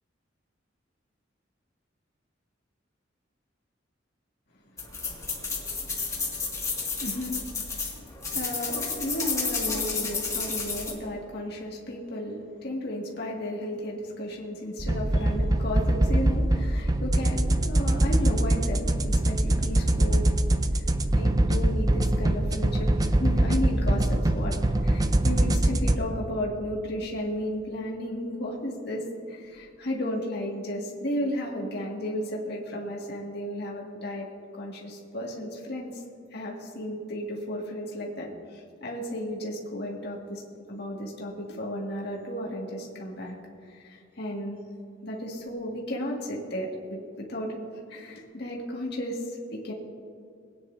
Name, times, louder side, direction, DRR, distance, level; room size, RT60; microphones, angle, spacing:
sound 1, 4.8-10.9, left 4 dB, 15° left, 1.9 m, -31 dB
voice 1, 7.0-7.4 7.8-7.9 8.3-20.2 21.1-24.6 24.8-34.3 34.5-36.0 36.3-40.4 40.7-43.4 43.6-44.6 45.0-47.6 47.9-49.7, left 1 dB, 60° left, -3 dB, 1.9 m, -34 dB
sound 2, 14.8-26.0, right 1 dB, 20° right, 0.4 m, -23 dB
21.5 x 9.5 x 2.6 m, 2.4 s
head